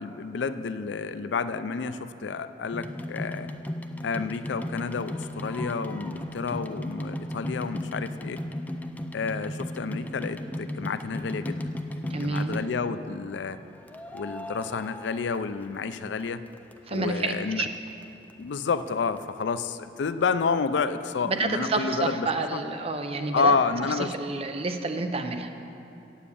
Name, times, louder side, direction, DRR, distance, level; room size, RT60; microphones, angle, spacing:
voice 1, 0.0-3.5 4.0-8.4 9.1-11.7 12.0-13.6 14.1-16.4 16.9-17.6 18.4-22.6 23.3-24.1, left 5 dB, 90° left, 12 dB, 0.4 m, -30 dB
sound 1, 2.7-13.0 13.9-16.0 16.3-17.2 17.7-17.8 18.0-18.1 18.3-18.4 18.9-19.0 19.2-19.3, left 1 dB, 10° left, 0.4 m, -35 dB
voice 2, 12.1-12.6 16.9-17.7 21.2-23.5 24.1-25.5, right 3 dB, 35° right, 6 dB, 0.7 m, -29 dB
8.2 x 7.2 x 8.5 m, 2.8 s
head